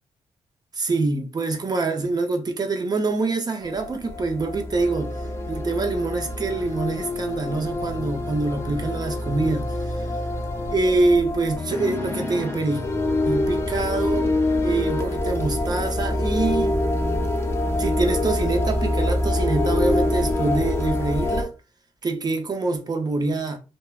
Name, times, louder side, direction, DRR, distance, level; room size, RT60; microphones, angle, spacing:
voice 1, 0.7-5.1 5.5-10.1 10.7-12.8 13.2-14.3 14.6-16.8 17.8-21.5 22.0-23.6, right 3 dB, 35° right, 0.6 m, -25 dB
sound 1, 3.6-21.4, left 1 dB, 20° left, 0.6 m, -25 dB
3.2 x 2.1 x 2.3 m
cardioid pair, 100°, 12 cm